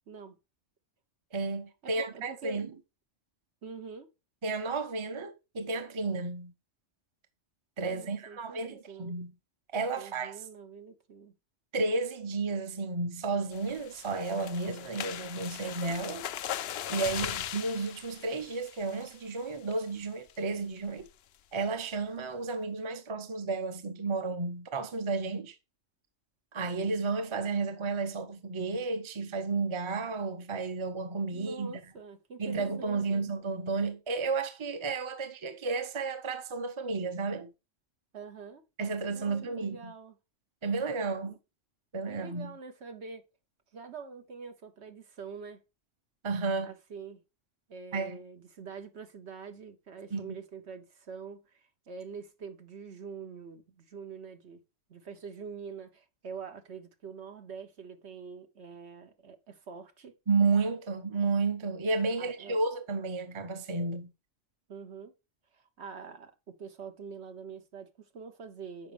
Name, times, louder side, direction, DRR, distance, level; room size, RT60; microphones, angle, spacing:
voice 1, 0.1-0.4 1.8-2.6 3.6-4.1 7.9-9.2 10.0-11.3 31.3-33.2 38.1-38.6 39.1-40.1 41.2-41.4 42.1-43.3 43.7-45.6 46.6-47.2 47.7-54.6 54.9-60.1 62.2-62.6 64.7-65.1 65.5-68.9, right 5 dB, 60° right, 1.3 m, -45 dB
voice 2, 1.3-2.7 4.4-6.5 7.8-9.3 9.7-10.4 11.7-16.3 16.9-21.1 21.5-25.5 26.5-31.8 32.4-37.5 38.8-39.9 40.6-41.4 41.9-42.5 46.2-46.7 47.9-48.2 50.1-50.4 60.3-64.1, right 3 dB, 25° right, 0.8 m, -32 dB
sound 1, 13.5-19.3 19.7-20.0 20.3-20.4 20.8-21.1, left 11 dB, 65° left, 0.7 m, -39 dB
7.0 x 5.2 x 5.1 m
omnidirectional pair, 1.3 m